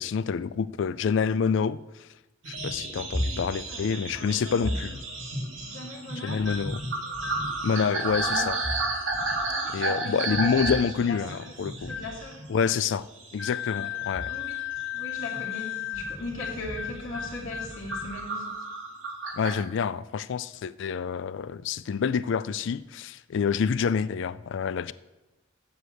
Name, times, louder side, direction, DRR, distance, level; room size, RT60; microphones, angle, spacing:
voice 1, 0.0-2.1 2.5-5.0 6.2-6.8 7.6-8.6 9.7-11.9 12.5-13.1 13.3-14.3 19.4-24.9, left 6 dB, 65° left, 0.4 m, -27 dB
sound 1, 2.4-12.9 13.2-13.8 14.1-15.6 16.1-16.3 16.6-16.9 17.4-19.5, right 2 dB, 75° right, 2.2 m, -32 dB
voice 2, 3.7-4.7 5.6-6.4 7.6-8.5 9.5-10.5 10.9-11.4 11.8-12.4 13.8-13.9 14.3-14.5 14.9-18.7, left 2 dB, 85° left, 2.5 m, -39 dB
sound 2, 6.4-6.7 7.1-7.5 8.1-8.4 9.1-9.5 10.3-10.7 11.8-12.2 13.4-18.2, left 9 dB, 5° left, 0.9 m, -36 dB
7.9 x 6.6 x 7.8 m
head